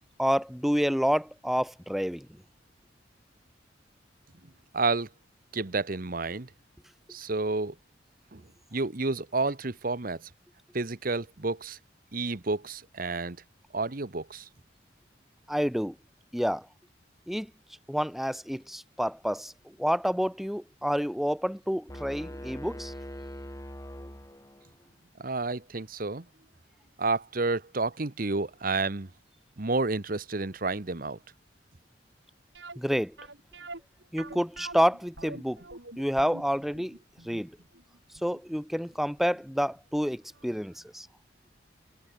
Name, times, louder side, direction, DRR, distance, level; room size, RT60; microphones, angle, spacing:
voice 1, 0.2-2.3 15.5-15.9 16.3-16.7 17.3-17.5 17.9-22.9 32.7-33.2 34.1-35.6 36.0-37.0 37.2-37.6 38.2-41.1, equal, ahead, 6.9 m, -28 dB
voice 2, 4.7-5.1 5.5-6.5 7.1-7.7 8.3-8.4 8.7-10.2 10.7-11.8 12.1-13.4 13.7-14.4 25.2-26.2 27.0-29.1 29.6-31.2, right 3 dB, 50° right, 1.1 m, -30 dB
sound 1, 21.9-24.8, equal, 15° left, 7.9 m, -42 dB
sound 2, 32.5-39.4 39.7-39.8 40.3-40.5 40.8-40.9, right 2 dB, 70° right, 7.2 m, -45 dB
head